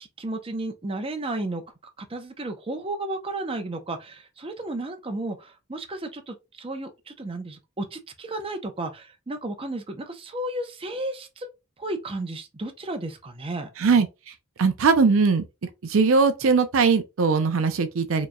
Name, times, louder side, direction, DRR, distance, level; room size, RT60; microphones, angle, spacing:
voice 1, 0.0-1.6 2.0-11.5 11.8-13.7, right 2 dB, 25° right, 0.6 m, -33 dB
voice 2, 13.8-14.1 14.6-15.4 15.8-18.3, right 5 dB, 70° right, 0.5 m, -20 dB
4.6 x 3.0 x 2.2 m
head